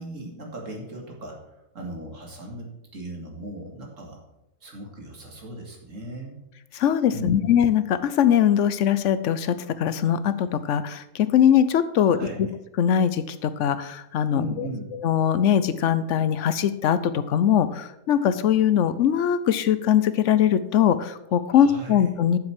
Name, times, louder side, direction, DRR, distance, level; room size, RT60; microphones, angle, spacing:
voice 1, 0.0-1.4 1.7-4.2 4.6-6.4 7.1-7.4 12.0-12.4 14.3-14.9 21.5-22.0, right 1 dB, 55° right, 0 dB, 2.4 m, -37 dB
voice 2, 6.7-12.5 12.8-14.7 15.0-22.4, left 9 dB, 65° left, 13 dB, 0.9 m, -21 dB
7.7 x 7.3 x 5.9 m, 0.88 s
omnidirectional pair, 1.6 m